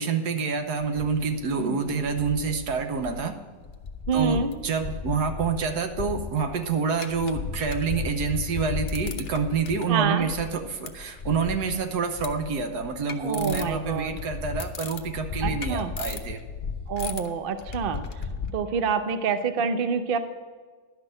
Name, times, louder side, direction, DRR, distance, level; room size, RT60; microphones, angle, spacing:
voice 1, 0.0-3.3 4.1-16.4, right 5 dB, 75° right, 7 dB, 1.5 m, -27 dB
sound 1, 0.8-1.6 1.9-3.4 3.6-18.5, left 5 dB, 50° left, 0.6 m, -35 dB
voice 2, 4.1-4.5 9.9-10.3 13.2-14.2 15.4-15.9 16.9-18.0 18.5-20.2, right 6 dB, 50° right, 10 dB, 0.7 m, -27 dB
11.5 x 6.0 x 8.8 m, 1.5 s
omnidirectional pair, 1.8 m